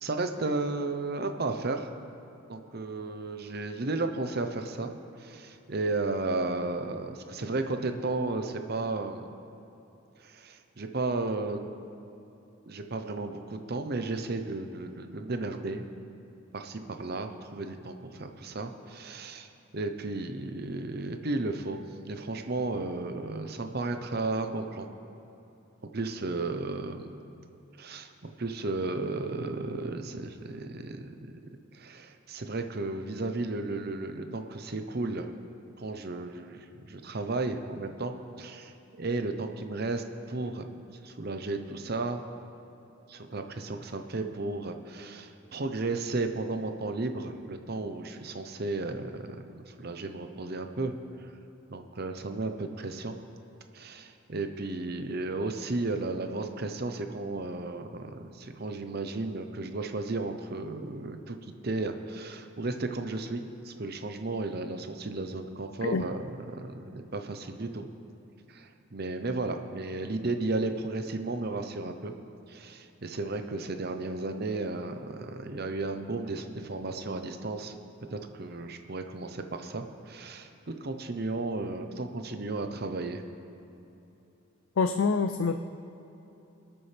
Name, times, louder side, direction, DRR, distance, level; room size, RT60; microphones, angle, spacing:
voice 1, 0.0-1.9 2.5-4.9 5.2-9.3 10.2-11.6 12.7-15.9 16.5-19.5 19.7-24.9 25.9-27.2 27.8-31.3 31.7-35.3 35.8-40.6 41.0-42.3 43.1-50.9 51.2-51.3 51.7-53.2 53.7-61.4 61.6-67.9 68.5-72.1 72.5-77.8 78.1-80.5 80.8-83.2, right 2 dB, 50° right, 7 dB, 0.8 m, -34 dB
voice 2, 84.8-85.6, left 4 dB, 75° left, 8 dB, 0.5 m, -26 dB
25.5 x 8.8 x 3.4 m, 3.0 s
head